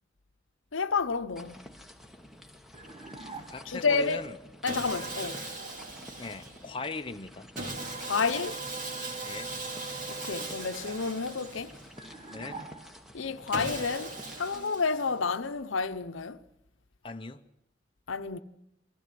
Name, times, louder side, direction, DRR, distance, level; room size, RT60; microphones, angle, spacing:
voice 1, 0.7-1.6 3.7-4.2 4.6-5.5 8.1-8.6 10.1-11.7 13.1-16.4 18.1-18.4, left 4 dB, 90° left, 0.9 m, -30 dB
sound 1, 1.4-14.6, left 1 dB, ahead, 1.2 m, -51 dB
sound 2, 2.7-3.9 12.0-13.3, right 3 dB, 25° right, 1.3 m, -45 dB
voice 2, 3.4-4.3 6.2-7.5 9.2-9.5 12.3-12.6 17.0-17.5, left 3 dB, 25° left, 0.7 m, -39 dB
Sawing, 4.7-6.7 7.6-12.1 13.5-15.3, right 2 dB, 40° right, 2.5 m, -39 dB
23.5 x 15.5 x 7.6 m
head